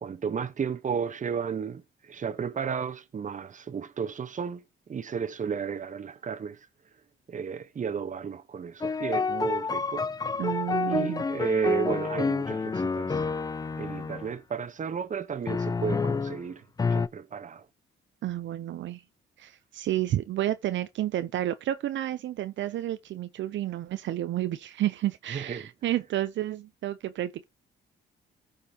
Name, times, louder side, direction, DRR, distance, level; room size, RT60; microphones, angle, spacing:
voice 1, 0.0-6.6 7.3-10.1 10.8-13.2 13.8-16.6 16.9-17.6 25.3-25.7, right 6 dB, 40° right, 1.1 m, -33 dB
sound 1, 8.8-14.3 15.5-16.4 16.8-17.1, left 4 dB, 20° left, 0.4 m, -29 dB
voice 2, 10.4-11.2 18.2-19.0 19.4-27.4, right 13 dB, 70° right, 0.6 m, -31 dB
14.5 x 5.4 x 2.9 m
cardioid pair, 90°, 20 cm